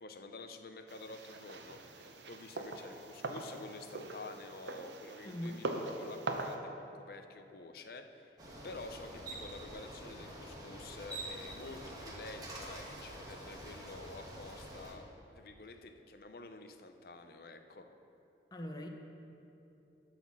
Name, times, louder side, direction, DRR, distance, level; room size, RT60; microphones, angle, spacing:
voice 1, 0.0-8.4 8.6-15.0 15.4-17.9, left 3 dB, 55° left, 7 dB, 0.6 m, -49 dB
sound 1, 0.9-6.6, right 2 dB, 85° right, 0.7 m, -42 dB
voice 2, 5.2-5.6 18.5-18.9, equal, 20° left, 3 dB, 0.7 m, -41 dB
Bicycle, 8.4-14.9, right 1 dB, 20° right, 1.3 m, -46 dB
12.0 x 4.2 x 7.2 m, 2.8 s
head